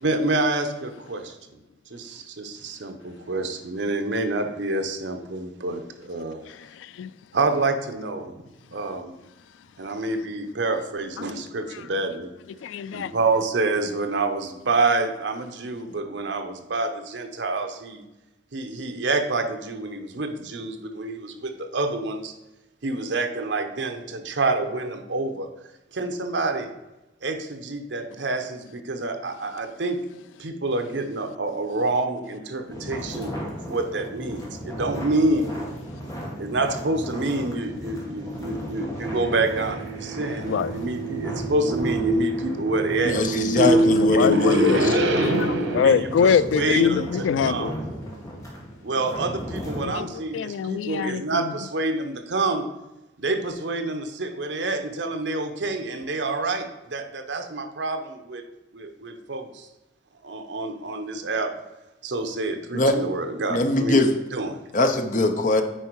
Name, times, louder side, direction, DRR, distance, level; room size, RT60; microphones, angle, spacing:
voice 1, 0.0-1.4 1.9-6.4 7.3-8.4 8.7-9.1 9.8-12.3 12.9-18.0 18.5-22.3 22.8-25.5 25.9-26.7 27.2-30.0 30.4-35.5 36.4-43.2 44.1-44.3 45.8-47.7 48.8-52.7 53.2-58.4 58.7-59.7 60.2-61.5 62.0-64.0 64.3-64.6, right 2 dB, 70° right, 0.8 m, -27 dB
voice 2, 6.5-7.1 11.2-11.3 12.6-13.1 40.5-40.7 43.4-43.7 44.1-47.8 49.8-50.1 50.3-51.5, left 7 dB, 85° left, 0.3 m, -24 dB
sound 1, 32.7-49.8, equal, 15° left, 1.7 m, -35 dB
sound 2, 39.0-45.9, right 2 dB, 85° right, 1.1 m, -24 dB
voice 3, 43.0-45.0 62.7-63.0 63.5-64.2 64.7-65.6, left 2 dB, 45° left, 0.7 m, -22 dB
9.0 x 4.4 x 4.6 m
head